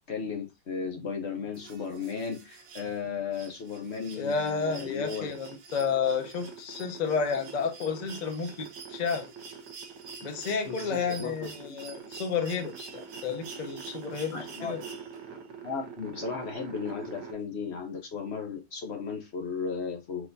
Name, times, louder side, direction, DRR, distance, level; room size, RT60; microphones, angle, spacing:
voice 1, 0.1-5.3 10.7-11.8 14.3-14.8 15.6-20.3, left 5 dB, 55° left, 0.8 m, -35 dB
sound 1, 1.5-15.5 16.9-17.0, right 5 dB, 55° right, 1.1 m, -49 dB
voice 2, 4.2-9.3 10.2-14.8, left 5 dB, 80° left, 0.3 m, -31 dB
sound 2, 4.7-17.3, right 6 dB, 75° right, 1.7 m, -45 dB
4.5 x 4.1 x 2.6 m
omnidirectional pair, 2.0 m